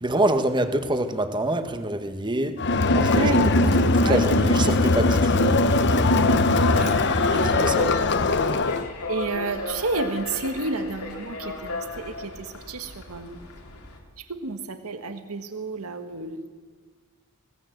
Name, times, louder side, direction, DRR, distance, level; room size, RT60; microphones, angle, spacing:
voice 1, 0.0-2.6 2.9-3.7 4.0-5.6 7.4-7.9, right 1 dB, 20° right, 8 dB, 1.4 m, -26 dB
Crowd, 2.6-8.9, left 2 dB, 55° left, 1.0 m, -20 dB
voice 2, 3.1-4.5 6.2-7.3 8.6-8.7 9.1-13.4 14.3-16.5, right 3 dB, 75° right, 8 dB, 1.6 m, -31 dB
sound 1, 6.1-14.0, left 2 dB, 80° left, 3.5 m, -34 dB
20.5 x 18.0 x 7.9 m, 1.5 s
head